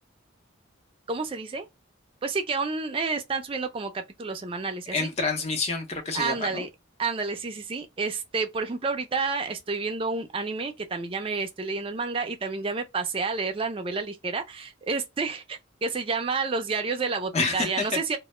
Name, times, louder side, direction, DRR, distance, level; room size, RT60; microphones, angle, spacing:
voice 1, 1.1-1.7 2.2-5.1 6.1-6.7 7.0-18.2, right 4 dB, 25° right, 0.4 m, -30 dB
voice 2, 4.9-6.6 17.3-18.0, left 3 dB, 35° left, 0.6 m, -28 dB
2.1 x 2.0 x 3.0 m
head